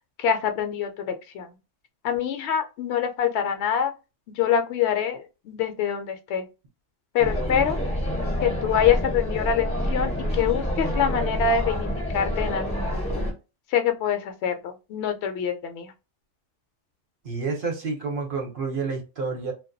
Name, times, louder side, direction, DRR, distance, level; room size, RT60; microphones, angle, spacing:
voice 1, 0.2-1.5 2.0-3.9 4.4-6.4 7.1-7.8 8.4-13.1 13.7-15.9, left 8 dB, 70° left, 0.8 m, -25 dB
sound 1, 7.2-13.3, equal, 5° left, 0.5 m, -27 dB
voice 2, 17.2-19.5, right 4 dB, 50° right, 0.8 m, -29 dB
2.3 x 2.2 x 2.5 m
omnidirectional pair, 1.2 m